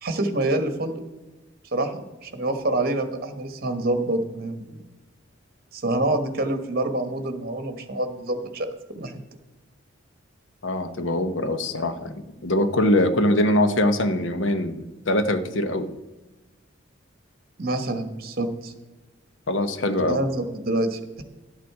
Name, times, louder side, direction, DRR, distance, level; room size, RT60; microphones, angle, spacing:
voice 1, 0.0-1.0 1.7-4.8 5.7-8.7 8.9-9.2 17.6-18.7 20.1-21.0, right 2 dB, 50° right, 8 dB, 1.2 m, -26 dB
voice 2, 10.6-15.9 19.5-20.2, left 1 dB, 65° left, 10 dB, 0.9 m, -23 dB
12.0 x 8.7 x 4.7 m, 1.1 s
head